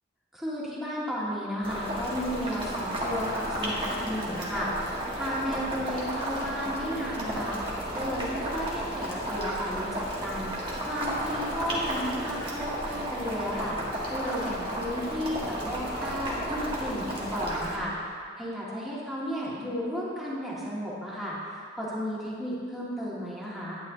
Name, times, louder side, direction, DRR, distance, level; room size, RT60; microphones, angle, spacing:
voice 1, 0.3-10.6 10.9-17.9 18.4-23.8, equal, ahead, -8 dB, 2.0 m, -33 dB
Boiling, 1.6-17.8, equal, 25° right, 1.6 m, -33 dB
11.5 x 9.5 x 2.8 m, 2.1 s
head